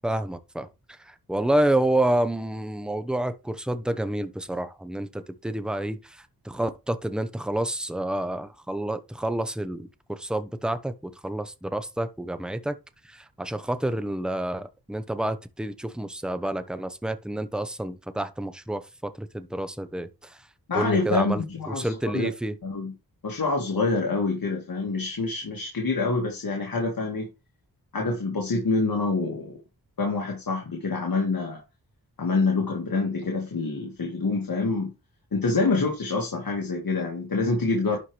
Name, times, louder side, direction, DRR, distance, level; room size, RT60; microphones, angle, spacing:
voice 1, 0.0-0.7 1.1-6.2 6.4-12.8 13.1-20.3 20.7-22.6, right 1 dB, ahead, 0.8 m, -29 dB
voice 2, 20.7-22.3 22.6-22.9 23.2-27.3 27.9-29.6 30.0-31.6 32.2-34.9 35.3-38.0, left 3 dB, 65° left, 1.9 m, -26 dB
11.5 x 4.6 x 3.3 m
wide cardioid pair, 90°, 38 cm